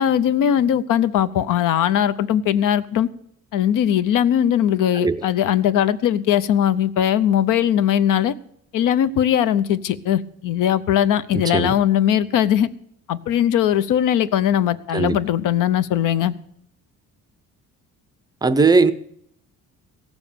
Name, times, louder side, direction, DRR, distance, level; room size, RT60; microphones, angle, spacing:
voice 1, 0.0-3.1 3.5-8.3 8.7-12.7 13.1-16.3, left 10 dB, 70° left, 0.7 m, -19 dB
voice 2, 11.3-11.8 14.9-15.2 18.4-18.9, right 4 dB, 10° right, 0.5 m, -18 dB
16.5 x 7.2 x 7.0 m
cardioid pair, 155°, 33 cm